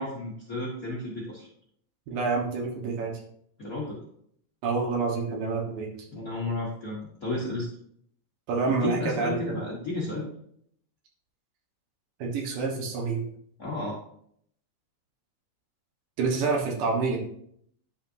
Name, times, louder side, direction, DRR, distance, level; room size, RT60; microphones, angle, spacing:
voice 1, 0.0-1.5 3.6-4.0 6.1-7.7 8.7-10.3 13.6-14.0, left 2 dB, 80° left, -4 dB, 0.7 m, -33 dB
voice 2, 2.1-3.1 4.6-5.9 8.5-9.5 12.2-13.2 16.2-17.2, right 4 dB, 85° right, -1 dB, 3.1 m, -27 dB
10.0 x 5.8 x 2.7 m, 0.67 s
omnidirectional pair, 3.8 m